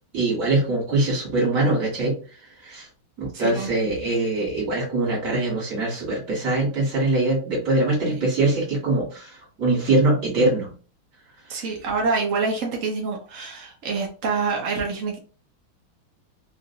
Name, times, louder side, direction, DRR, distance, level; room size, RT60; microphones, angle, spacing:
voice 1, 0.1-2.9 3.2-10.7 11.5-11.6, right 2 dB, 40° right, -3 dB, 1.8 m, -23 dB
voice 2, 3.3-3.7 8.1-8.2 11.5-15.2, right 4 dB, 70° right, 0 dB, 0.7 m, -26 dB
3.7 x 2.5 x 2.6 m, 0.37 s
omnidirectional pair, 2.3 m